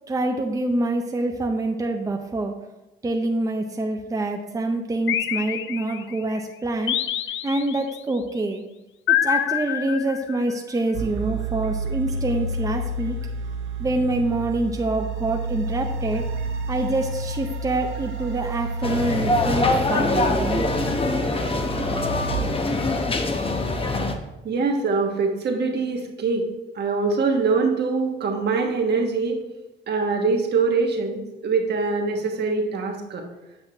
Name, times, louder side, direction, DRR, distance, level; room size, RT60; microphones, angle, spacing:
voice 1, 0.1-2.6 3.0-7.0 7.4-8.6 9.1-13.2 13.8-16.2 16.7-20.6, right 2 dB, 15° right, 3 dB, 0.6 m, -26 dB
sound 1, 5.1-6.2 6.9-8.0 9.1-10.5, left 11 dB, 80° left, 0.4 m, -26 dB
sound 2, 10.9-22.3, right 2 dB, 90° right, 0.8 m, -30 dB
sound 3, 18.8-24.1, left 2 dB, 30° left, 0.8 m, -23 dB
voice 2, 24.4-26.5 26.7-29.4 29.9-33.2, right 4 dB, 55° right, 2 dB, 1.2 m, -23 dB
7.9 x 5.6 x 2.8 m, 1.0 s
cardioid pair, 90°, 20 cm